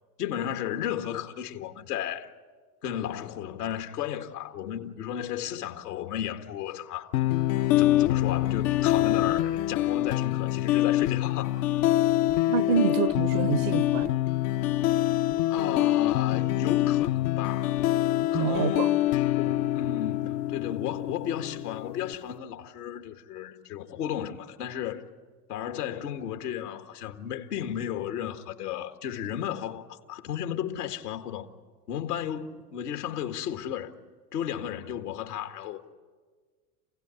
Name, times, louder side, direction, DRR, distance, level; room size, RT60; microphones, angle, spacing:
voice 1, 0.2-2.3 2.8-7.4 7.8-11.7 15.5-17.8 18.3-19.0 19.4-25.0 25.5-31.5 31.9-33.9 34.3-35.9, left 10 dB, 85° left, 1.9 m, -34 dB
sound 1, 7.1-22.1, left 14 dB, 60° left, 0.7 m, -25 dB
voice 2, 12.5-14.2 18.3-19.0, right 8 dB, 75° right, 1.2 m, -27 dB
27.5 x 16.5 x 9.7 m
hypercardioid pair, 95°, 46 cm